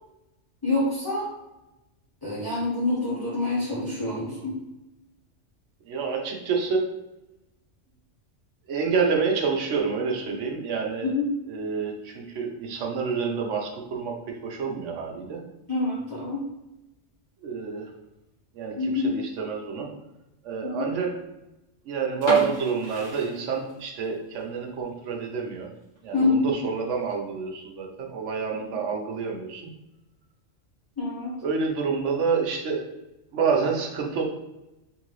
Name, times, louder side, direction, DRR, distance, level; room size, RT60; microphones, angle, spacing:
voice 1, 0.6-1.3 2.2-4.6 11.0-11.3 15.7-16.4 18.8-19.2 20.6-20.9 26.1-26.5 28.6-28.7 31.0-31.4, left 2 dB, 20° left, -8 dB, 0.9 m, -26 dB
voice 2, 5.9-6.9 8.7-11.1 11.5-15.4 17.4-17.9 18.5-19.9 20.4-21.1 21.8-25.7 26.0-29.7 31.4-32.8 33.3-34.2, right 5 dB, 75° right, 1 dB, 1.1 m, -28 dB
sound 1, 22.2-24.0 24.4-24.5 25.0-25.2 25.6-25.7 26.0-26.1 26.8-27.1, right 1 dB, 75° left, 1.9 m, -32 dB
3.8 x 3.4 x 3.1 m, 0.95 s
omnidirectional pair, 1.3 m